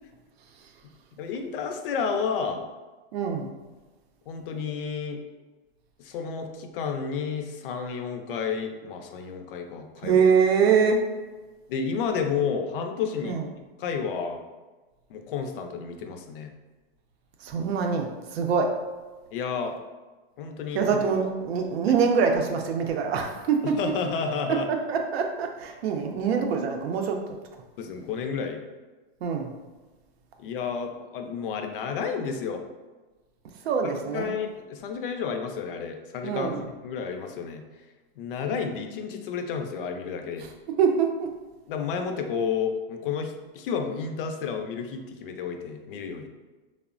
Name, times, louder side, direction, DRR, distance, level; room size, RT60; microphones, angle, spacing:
voice 1, 1.2-2.6 4.3-5.2 6.0-10.2 11.7-13.4 13.8-14.4 15.1-16.5 19.3-19.8 20.4-21.0 23.6-24.7 27.8-28.6 30.4-32.6 33.8-36.5 36.8-37.6 38.2-40.5 41.7-46.3, left 6 dB, 60° left, 5 dB, 0.4 m, -31 dB
voice 2, 3.1-3.5 10.0-11.0 13.2-13.4 17.4-18.7 20.7-23.8 24.7-27.2 29.2-29.5 33.6-34.3 36.2-36.6 40.8-41.3, right 6 dB, 90° right, 3 dB, 0.5 m, -24 dB
3.2 x 2.0 x 2.4 m, 1.2 s
supercardioid pair, 155°, 30 cm